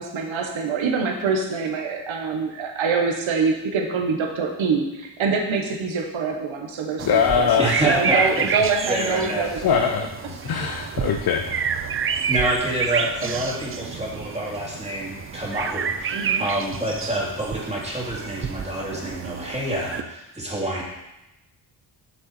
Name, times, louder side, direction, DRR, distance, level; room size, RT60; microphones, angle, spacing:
voice 1, 0.0-9.9 10.6-10.7 13.2-13.3 16.1-16.4, right 5 dB, 75° right, 2 dB, 1.3 m, -25 dB
voice 2, 7.0-7.8 9.6-11.7, left 7 dB, 50° left, 5 dB, 0.6 m, -22 dB
sound 1, 7.0-20.0, right 6 dB, 30° right, 0.3 m, -29 dB
voice 3, 7.6-8.5 8.9-9.4 12.3-20.8, right 1 dB, 15° right, -4 dB, 2.3 m, -27 dB
7.2 x 6.8 x 4.4 m, 0.95 s
wide cardioid pair, 110°, 48 cm